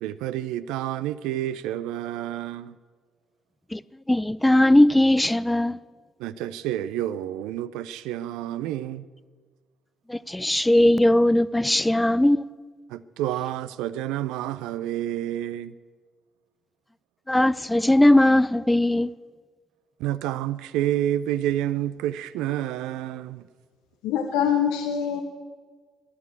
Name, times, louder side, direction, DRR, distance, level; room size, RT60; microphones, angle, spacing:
voice 1, 0.0-2.8 6.2-9.1 12.9-15.7 20.0-23.5, right 12 dB, 70° right, 0.4 m, -29 dB
voice 2, 4.1-5.8 10.1-12.5 17.3-19.1, left 1 dB, 10° left, 0.4 m, -19 dB
voice 3, 24.0-25.2, left 8 dB, 70° left, 0.9 m, -24 dB
14.5 x 11.0 x 8.5 m
figure-of-eight pair, 45°, 0 cm